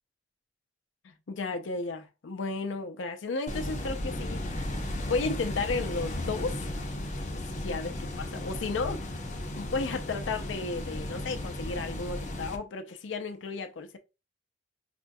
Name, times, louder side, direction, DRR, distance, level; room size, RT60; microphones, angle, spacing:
voice 1, 1.0-4.4 5.0-6.6 7.6-9.0 9.6-14.0, left 3 dB, 90° left, 0.5 m, -33 dB
sound 1, 3.5-12.6, left 1 dB, 40° left, 0.6 m, -35 dB
4.9 x 2.2 x 2.6 m
head